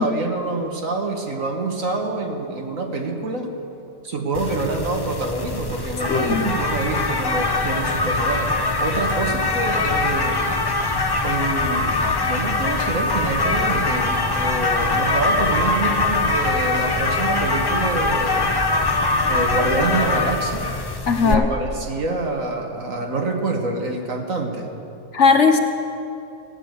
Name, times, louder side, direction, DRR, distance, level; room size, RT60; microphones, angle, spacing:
voice 1, 0.0-3.5 4.0-10.4 11.2-18.6 19.3-20.7 21.2-24.7, right 3 dB, 60° right, 2 dB, 1.9 m, -26 dB
sound 1, 4.3-21.3, left 3 dB, 35° left, 0.3 m, -22 dB
voice 2, 6.1-6.5 21.1-21.5 25.1-25.6, left 5 dB, 55° left, 6 dB, 1.1 m, -17 dB
17.0 x 10.0 x 8.0 m, 2.7 s
omnidirectional pair, 1.6 m